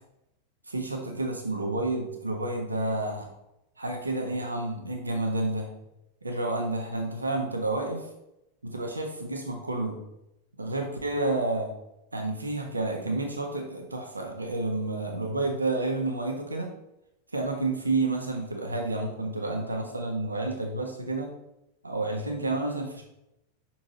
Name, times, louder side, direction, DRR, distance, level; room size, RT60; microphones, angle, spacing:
voice 1, 0.7-3.3 3.8-5.7 6.2-8.1 8.6-10.0 10.6-11.7 12.1-16.7 17.3-21.3 21.8-23.0, right 2 dB, 80° right, 2 dB, 1.2 m, -30 dB
6.2 x 4.5 x 4.2 m, 0.86 s
figure-of-eight pair, 90°, 0 cm